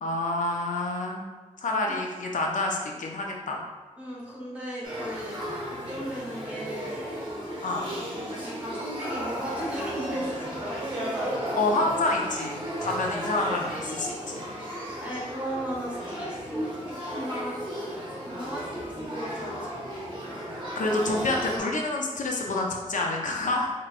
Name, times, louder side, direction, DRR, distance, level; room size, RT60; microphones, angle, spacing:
voice 1, 0.0-1.2 1.6-3.6 7.6-7.8 11.5-14.4 20.8-23.7, left 2 dB, 80° left, 0 dB, 0.5 m, -28 dB
voice 2, 4.0-7.2 8.3-11.6 13.0-13.1 15.0-17.6 18.2-20.3, equal, 10° right, -6 dB, 1.2 m, -37 dB
Male speech man speaking / Child speech kid speaking / Conversation, 4.8-21.6, equal, 40° right, 1.1 m, -34 dB
4.7 x 3.0 x 2.5 m, 1.3 s
wide cardioid pair, 105°, 13 cm